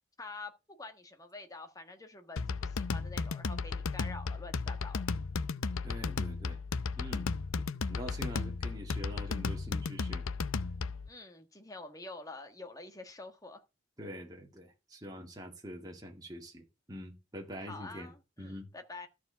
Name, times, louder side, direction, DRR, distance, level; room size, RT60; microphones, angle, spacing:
voice 1, 0.2-0.5 0.8-5.0 11.1-13.6 17.6-19.1, left 3 dB, 15° left, 1.4 m, -47 dB
sound 1, 2.4-11.1, left 4 dB, 85° left, 0.6 m, -35 dB
voice 2, 5.8-6.6 7.0-7.3 7.8-10.2 14.0-18.1 18.4-18.7, equal, 20° right, 2.1 m, -45 dB
13.5 x 4.8 x 6.7 m
head